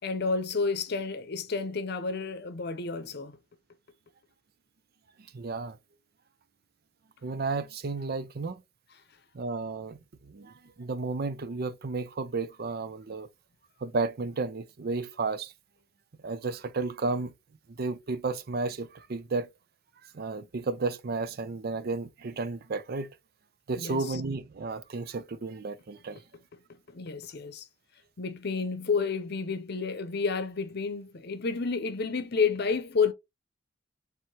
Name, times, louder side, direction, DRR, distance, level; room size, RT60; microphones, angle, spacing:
voice 1, 0.0-3.3 23.8-24.2 26.9-27.7 28.2-33.1, left 4 dB, 55° left, 0.7 m, -30 dB
voice 2, 5.3-5.8 7.2-8.6 9.3-10.0 10.3-10.5 10.8-13.3 13.8-15.5 16.2-17.3 17.8-19.5 20.1-23.1 23.7-26.2, right 3 dB, 55° right, 0.5 m, -32 dB
4.7 x 3.4 x 2.8 m
head